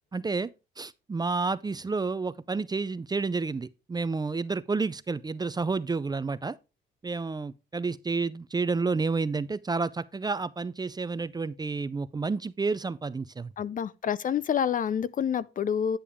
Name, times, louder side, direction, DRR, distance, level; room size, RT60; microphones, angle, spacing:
voice 1, 0.1-0.5 0.8-6.6 7.0-13.5, right 4 dB, 20° right, 0.4 m, -30 dB
voice 2, 13.6-16.0, left 8 dB, 40° left, 0.5 m, -28 dB
10.0 x 6.9 x 3.5 m
cardioid pair, 90°, 20 cm